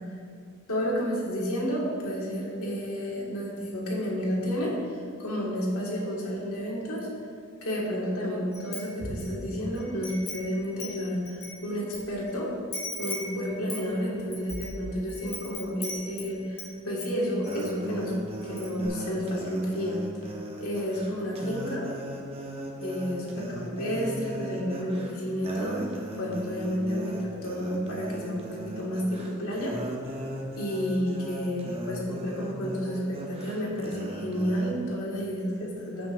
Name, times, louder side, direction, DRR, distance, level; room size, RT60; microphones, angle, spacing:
voice 1, 0.7-7.1 7.6-12.5 13.0-18.1 18.4-20.0 20.6-21.9 22.8-29.8 30.6-36.1, equal, 85° left, -3 dB, 2.0 m, -31 dB
Wind chime, 8.5-9.3 9.7-12.0 12.3-12.4 12.7-16.7 17.0-17.7 18.1-18.2 18.4-18.9, left 2 dB, 25° left, 1.5 m, -38 dB
sound 1, 17.4-34.7, right 1 dB, 25° right, 0.8 m, -38 dB
16.0 x 5.9 x 2.6 m, 2.2 s
head